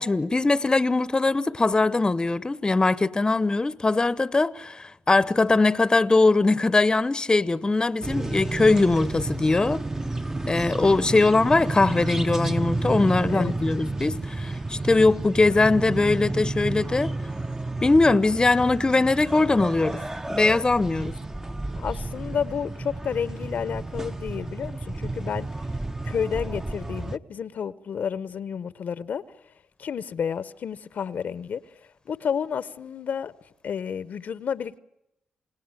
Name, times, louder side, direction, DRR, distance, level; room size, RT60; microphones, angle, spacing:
voice 1, 0.0-9.8 10.5-17.1 17.8-20.0 20.3-21.1, left 3 dB, 25° left, 0.9 m, -21 dB
sound 1, 8.0-27.2, right 2 dB, 15° right, 0.9 m, -31 dB
voice 2, 21.7-25.5 26.0-29.2 29.8-33.3 33.6-34.8, left 7 dB, 65° left, 0.8 m, -31 dB
29.0 x 17.5 x 8.9 m
supercardioid pair, 55°, 3 cm